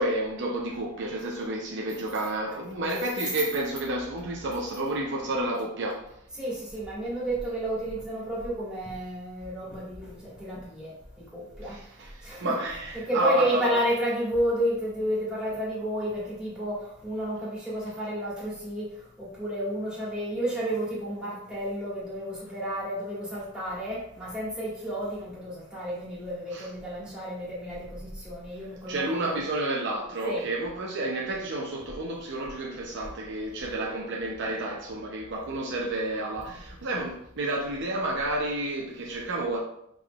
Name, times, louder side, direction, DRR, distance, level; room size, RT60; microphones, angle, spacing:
voice 1, 0.0-6.1 11.6-13.8 26.5-26.7 28.9-39.6, right 1 dB, 60° right, 0.6 m, -30 dB
voice 2, 6.3-12.6 12.9-18.9 19.2-29.4 30.3-30.4, equal, 5° right, 1.7 m, -31 dB
5.2 x 3.7 x 2.3 m
head